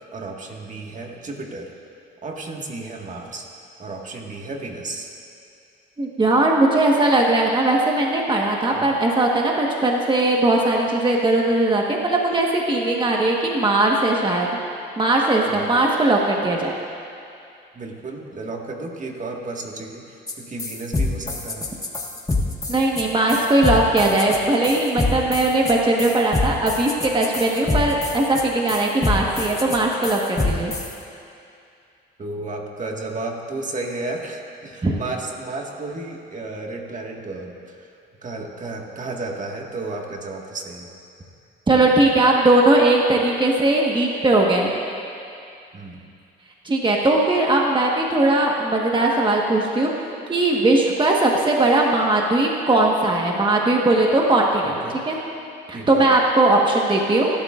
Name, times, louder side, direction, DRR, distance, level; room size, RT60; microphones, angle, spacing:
voice 1, 0.1-1.7 2.2-3.4 3.8-5.1 8.7-8.9 15.5-15.7 17.7-21.7 27.6-27.8 32.2-37.9 38.2-40.9 45.7-46.0 54.6-55.0 55.7-56.1, right 2 dB, 40° right, 0 dB, 1.8 m, -33 dB
voice 2, 6.0-14.5 15.0-16.7 22.7-30.7 34.8-34.9 41.7-44.7 46.6-54.7 55.1-55.2 55.7-57.3, right 2 dB, 25° right, -1 dB, 1.4 m, -19 dB
sound 1, 20.3-20.4 20.6-30.9, left 3 dB, 15° left, 1.6 m, -25 dB
22.5 x 12.0 x 2.5 m, 2.5 s
cardioid pair, 90°, 20 cm